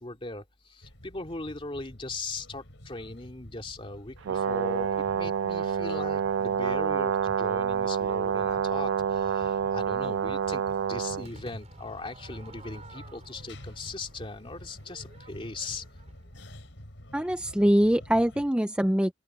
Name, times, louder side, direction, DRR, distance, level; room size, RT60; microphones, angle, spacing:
voice 1, 0.0-15.8, left 2 dB, 30° left, 2.5 m, -39 dB
sound 1, 0.8-18.5, left 1 dB, 75° left, 5.3 m, -49 dB
Brass instrument, 4.2-11.3, right 7 dB, 80° right, 0.3 m, -28 dB
Crowd / Fireworks, 11.2-16.5, right 2 dB, 35° right, 6.4 m, -53 dB
voice 2, 17.1-19.1, equal, 5° right, 0.6 m, -23 dB
open air
head